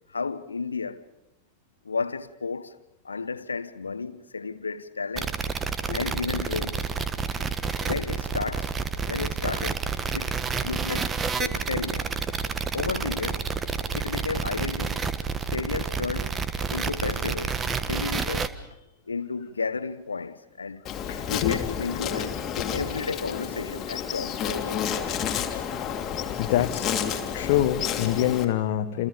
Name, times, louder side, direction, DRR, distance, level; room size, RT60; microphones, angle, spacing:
voice 1, 0.1-1.1 1.8-2.7 3.0-5.3 5.9-6.9 7.8-8.7 9.0-9.9 10.1-12.1 12.7-13.5 13.9-15.0 15.5-16.4 16.7-18.5 19.1-20.8 21.3-24.9, left 4 dB, 75° left, 1.1 m, -32 dB
sound 1, 5.1-18.5, right 5 dB, 20° right, 1.4 m, -29 dB
Insect, 20.9-28.5, left 8 dB, 30° left, 2.7 m, -30 dB
voice 2, 21.1-21.9 22.6-22.7 26.4-26.9 27.3-29.1, left 12 dB, 50° left, 1.2 m, -26 dB
29.0 x 28.5 x 5.2 m
figure-of-eight pair, 90°, 0 cm